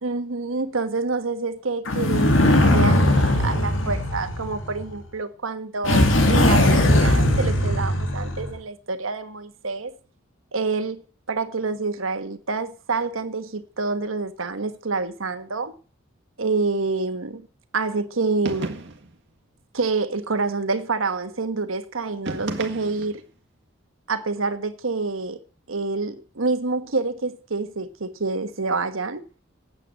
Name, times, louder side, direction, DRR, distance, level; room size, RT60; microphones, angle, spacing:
voice 1, 0.0-9.9 10.5-11.0 11.3-15.7 16.4-17.4 17.7-18.8 19.7-23.2 24.1-25.4 25.7-29.2, right 3 dB, 85° right, 1.3 m, -27 dB
sound 1, 1.8-4.9 5.8-8.6, left 1 dB, 70° left, 2.0 m, -19 dB
sound 2, 18.4-19.2 22.2-23.3, right 2 dB, 65° right, 1.8 m, -33 dB
9.2 x 8.8 x 7.6 m
head